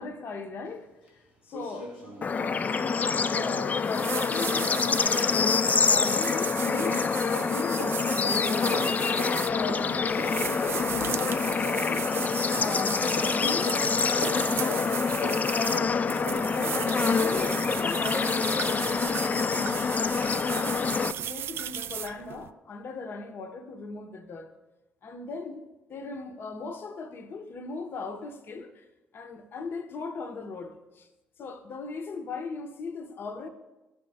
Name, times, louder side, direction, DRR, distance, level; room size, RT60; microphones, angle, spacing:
voice 1, 0.0-1.9 3.3-8.0 8.4-12.1 12.6-15.9 16.4-24.5 25.0-28.9 29.1-31.1 31.4-33.5, left 4 dB, 45° left, 0.8 m, -39 dB
sound 1, 0.7-0.8 1.1-1.2 1.5-6.1 6.3-17.9 18.3-18.4, left 1 dB, 85° left, 1.1 m, -41 dB
Bird / Insect / Frog, 2.2-21.1, left 5 dB, 30° left, 0.3 m, -26 dB
sound 2, 3.8-22.5, right 9 dB, 50° right, 0.3 m, -36 dB
12.0 x 4.2 x 3.3 m
figure-of-eight pair, 45°, 5 cm